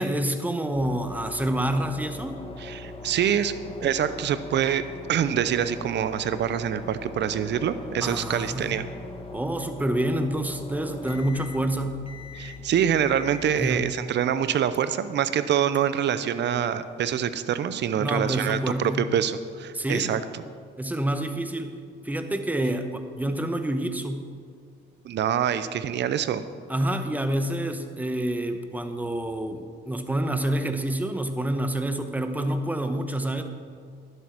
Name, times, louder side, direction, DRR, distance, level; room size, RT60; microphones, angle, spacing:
voice 1, 0.0-2.4 8.0-8.7 9.3-12.1 13.6-13.8 18.0-19.1 19.7-20.2 20.8-21.7 22.0-24.3 26.7-33.4, right 1 dB, 10° right, 7 dB, 1.0 m, -28 dB
sound 1, 0.7-13.9, left 3 dB, 30° left, 1.3 m, -41 dB
voice 2, 2.6-3.5 3.8-4.8 5.1-8.8 12.4-20.2 25.0-26.4, right 9 dB, 65° right, 13 dB, 0.7 m, -25 dB
11.0 x 7.8 x 6.0 m, 2.1 s
cardioid pair, 90°, 20 cm